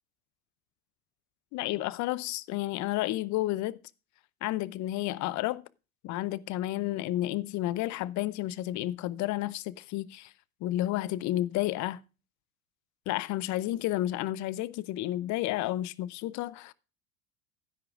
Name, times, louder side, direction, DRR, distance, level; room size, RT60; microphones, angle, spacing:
voice 1, 1.5-3.8 4.4-5.6 6.0-10.3 10.6-12.0 13.1-16.7, left 15 dB, 45° left, 0.7 m, -31 dB
12.0 x 10.5 x 2.5 m
hypercardioid pair, 90°, 42 cm